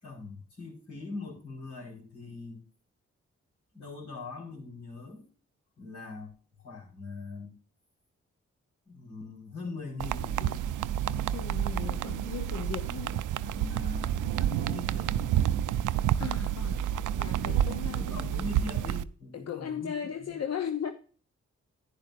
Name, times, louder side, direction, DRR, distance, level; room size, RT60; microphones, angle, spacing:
voice 1, 0.0-2.6 3.7-5.3 5.8-6.3 6.6-7.5 8.8-10.6 13.4-15.5 17.2-20.4, left 3 dB, 75° left, 4.9 m, -42 dB
sound 1, 10.0-19.0, right 11 dB, 80° right, 0.5 m, -29 dB
voice 2, 11.3-13.2 16.2-18.3 19.3-20.9, left 8 dB, 55° left, 0.9 m, -37 dB
10.5 x 10.0 x 2.6 m
supercardioid pair, 40°, 31 cm